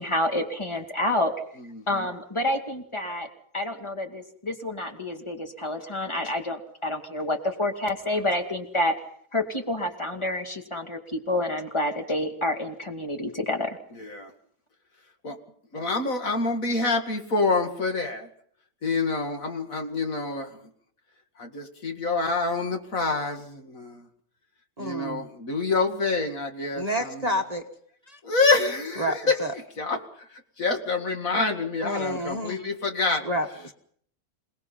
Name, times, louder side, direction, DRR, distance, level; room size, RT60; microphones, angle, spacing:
voice 1, 0.0-1.3 1.9-3.3 3.5-8.9 9.3-13.8, left 1 dB, 20° left, 4 dB, 2.4 m, -28 dB
voice 2, 1.7-2.1 14.0-14.3 15.2-15.4 15.7-18.3 18.8-20.5 21.4-24.1 24.8-27.2 28.2-29.4 29.8-30.3 30.6-33.2, left 3 dB, 65° left, 4 dB, 2.6 m, -27 dB
voice 3, 24.8-25.2 26.8-27.6 28.1-28.2 29.0-29.5 31.8-32.6 33.2-33.7, equal, 30° right, 3 dB, 1.3 m, -29 dB
27.0 x 19.0 x 5.7 m, 0.62 s
omnidirectional pair, 1.6 m